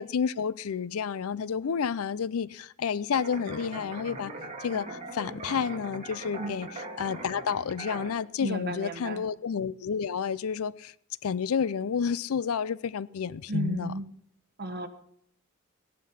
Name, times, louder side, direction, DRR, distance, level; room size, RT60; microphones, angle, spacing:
voice 1, 0.0-4.3 4.6-10.9 11.2-13.9, left 6 dB, 75° left, 0.5 m, -30 dB
sound 1, 3.1-8.1, right 2 dB, 30° right, 2.3 m, -40 dB
voice 2, 8.4-9.2 13.5-14.0 14.6-14.9, right 1 dB, 45° right, 1.4 m, -33 dB
15.0 x 11.0 x 5.7 m
head